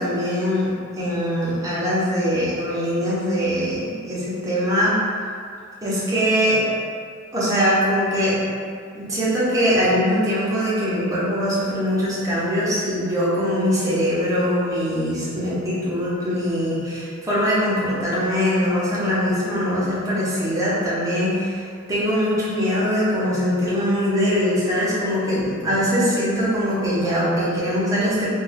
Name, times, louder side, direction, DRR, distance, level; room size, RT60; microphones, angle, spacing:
voice 1, 0.0-5.0 5.8-6.6 7.3-8.4 8.9-28.3, equal, 15° right, -9 dB, 0.6 m, -22 dB
2.3 x 2.2 x 3.2 m, 2.2 s
head